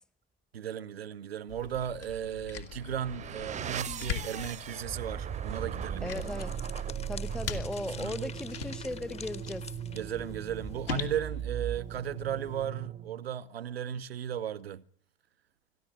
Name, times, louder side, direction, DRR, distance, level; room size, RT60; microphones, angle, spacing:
voice 1, 0.5-6.1 7.5-8.3 9.9-14.8, right 9 dB, 75° right, 0.9 m, -36 dB
sound 1, 1.5-12.7, left 7 dB, 65° left, 2.7 m, -42 dB
sound 2, 2.6-13.3, right 9 dB, 25° right, 0.9 m, -38 dB
sound 3, 5.0-10.9, left 4 dB, 20° left, 1.2 m, -47 dB
voice 2, 6.0-6.6 7.1-9.7, left 1 dB, ahead, 1.0 m, -37 dB
24.5 x 14.5 x 9.9 m
figure-of-eight pair, 70°, 31 cm